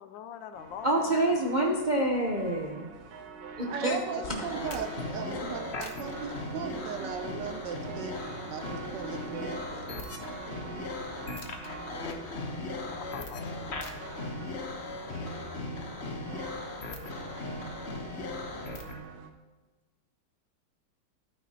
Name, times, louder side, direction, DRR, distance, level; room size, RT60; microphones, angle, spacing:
voice 1, 0.0-1.6 3.7-4.9 12.8-13.6, left 8 dB, 75° left, 10 dB, 1.3 m, -45 dB
sound 1, 0.5-19.3, right 5 dB, 85° right, 1.6 m, -45 dB
voice 2, 0.8-2.9 3.6-4.0 4.3-4.5 5.3-5.5 7.0-7.1, right 1 dB, 45° right, -1 dB, 0.6 m, -27 dB
voice 3, 3.7-10.0, right 6 dB, 70° right, 6 dB, 1.2 m, -37 dB
sound 2, 4.2-19.0, left 3 dB, 45° left, 1.0 m, -38 dB
12.0 x 9.5 x 2.9 m, 1.2 s
omnidirectional pair, 2.1 m